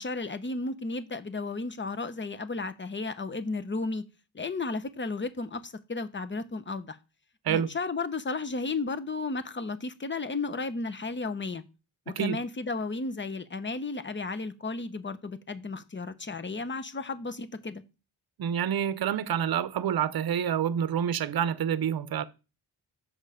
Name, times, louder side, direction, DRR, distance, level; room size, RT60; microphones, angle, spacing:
voice 1, 0.0-4.0 4.3-7.0 7.5-11.6 12.1-17.8, left 3 dB, 25° left, 0.9 m, -33 dB
voice 2, 18.4-22.2, right 9 dB, 60° right, 0.7 m, -27 dB
6.6 x 5.4 x 5.0 m
cardioid pair, 65°, 41 cm